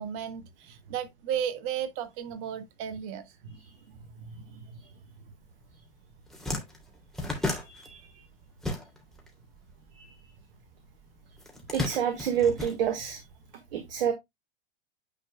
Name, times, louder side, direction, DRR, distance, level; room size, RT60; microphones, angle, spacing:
voice 1, 0.0-3.3, right 9 dB, 45° right, 1.6 m, -34 dB
voice 2, 4.3-4.6 7.4-8.0 10.0-10.2 11.7-13.2 13.7-14.1, right 8 dB, 70° right, 1.7 m, -29 dB
sound 1, 5.7-5.8 6.1-9.3 9.5-10.7 11.4-13.4, left 2 dB, ahead, 2.9 m, -34 dB
9.7 x 5.5 x 2.3 m
hypercardioid pair, 100°, 29 cm